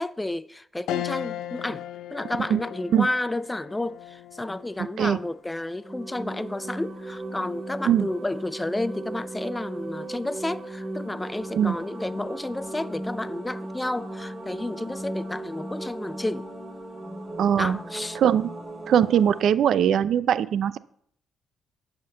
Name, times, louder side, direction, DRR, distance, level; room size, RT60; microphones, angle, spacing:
voice 1, 0.0-1.8 2.1-16.5 17.6-18.2, left 2 dB, 10° left, 0.5 m, -31 dB
sound 1, 0.9-10.5 11.0-11.1 12.4-12.8, left 13 dB, 85° left, 0.5 m, -40 dB
sound 2, 5.8-19.4, right 1 dB, 25° right, 3.0 m, -37 dB
voice 2, 17.4-17.8 18.2-18.4 18.9-20.8, right 9 dB, 70° right, 0.5 m, -21 dB
11.0 x 5.9 x 6.6 m
cardioid pair, 90°, 0 cm